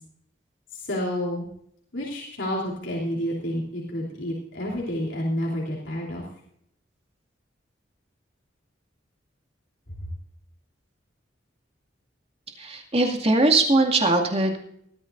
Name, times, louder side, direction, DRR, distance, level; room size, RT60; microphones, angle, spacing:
voice 1, 0.7-1.4 1.9-6.3, equal, 80° left, -3 dB, 3.4 m, -29 dB
voice 2, 12.6-14.6, right 2 dB, 30° right, 2 dB, 2.2 m, -21 dB
20.0 x 13.5 x 2.6 m, 0.69 s
head